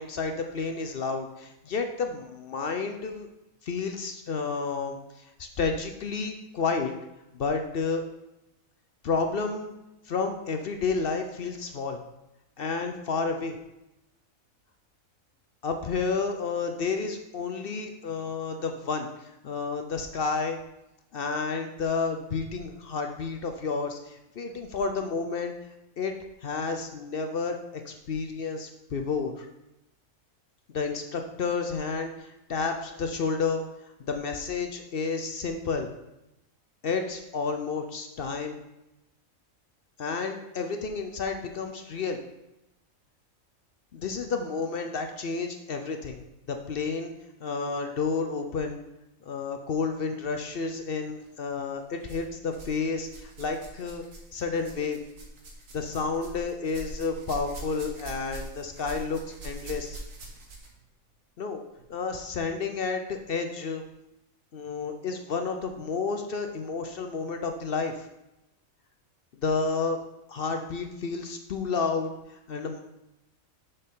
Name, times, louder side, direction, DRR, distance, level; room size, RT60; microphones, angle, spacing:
voice 1, 0.0-3.3 3.6-6.9 7.3-8.0 9.0-9.7 10.0-12.0 12.6-13.6 15.6-20.6 21.1-25.5 26.0-26.1 26.4-27.6 27.8-29.5 30.7-33.6 34.0-35.9 36.8-38.6 40.0-42.2 43.9-46.2 46.5-47.1 47.4-48.8 49.2-54.0 54.3-55.0 55.7-60.0 61.4-61.6 61.9-63.8 64.5-68.1 69.4-70.0 70.3-72.8, left 4 dB, 55° left, 5 dB, 0.7 m, -31 dB
sound 1, 51.1-51.3 52.0-52.8 53.0-60.8 61.8-61.9 62.7-62.8, right 2 dB, 70° right, 1.7 m, -43 dB
6.8 x 6.6 x 3.7 m, 0.91 s
omnidirectional pair, 1.4 m